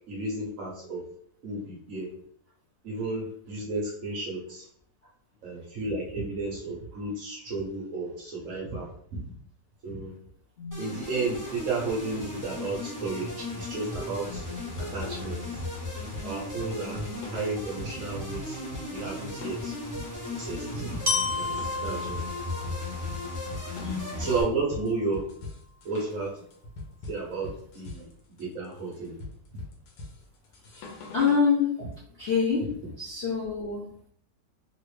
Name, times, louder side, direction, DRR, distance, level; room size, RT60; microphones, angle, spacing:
voice 1, 0.1-1.0 1.4-2.1 2.8-4.6 5.4-9.2 9.8-10.1 10.8-14.4 14.9-15.4 16.2-17.0 17.3-18.6 18.9-19.7 20.3-21.0 21.4-22.2 24.2-25.3 25.8-26.3 27.1-28.1 28.4-29.1, right 3 dB, 55° right, -3 dB, 1.0 m, -33 dB
voice 2, 10.6-11.0 15.2-15.3 23.8-24.3 31.1-31.7 32.1-32.7 33.0-33.9, left 6 dB, 55° left, -7 dB, 0.7 m, -26 dB
sound 1, 10.7-24.4, left 2 dB, 15° left, 0.7 m, -36 dB
sound 2, 13.9-31.5, left 2 dB, 80° left, 1.3 m, -43 dB
Glockenspiel, 21.1-25.0, left 3 dB, 70° right, 0.5 m, -33 dB
3.1 x 2.5 x 3.1 m, 0.63 s
omnidirectional pair, 1.9 m